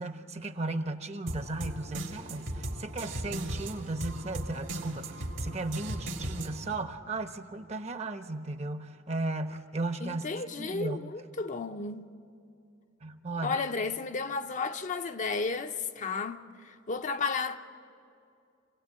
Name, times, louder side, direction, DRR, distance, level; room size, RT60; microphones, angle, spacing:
voice 1, 0.0-10.3 10.6-11.0 13.0-13.6, right 2 dB, 35° right, 0.9 m, -35 dB
sound 1, 1.3-6.8, right 1 dB, 65° right, 1.9 m, -37 dB
voice 2, 10.0-12.1 13.4-17.6, left 4 dB, 40° left, 0.6 m, -33 dB
26.5 x 17.0 x 8.5 m
head